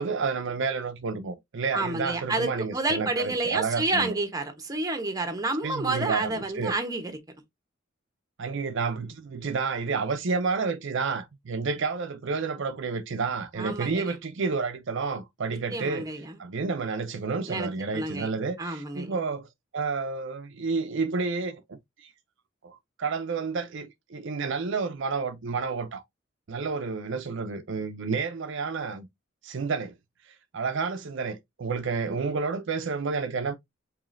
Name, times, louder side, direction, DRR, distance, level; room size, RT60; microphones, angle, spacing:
voice 1, 0.0-4.1 5.6-6.7 8.4-16.1 16.4-19.5 19.7-21.8 22.6-26.0 26.5-29.1 29.4-29.9 30.5-33.6, right 4 dB, 65° right, 0.6 m, -30 dB
voice 2, 1.7-7.2 13.6-14.1 15.7-16.4 17.5-18.3 18.6-19.2, right 2 dB, 20° right, 0.9 m, -29 dB
4.9 x 3.1 x 2.5 m
head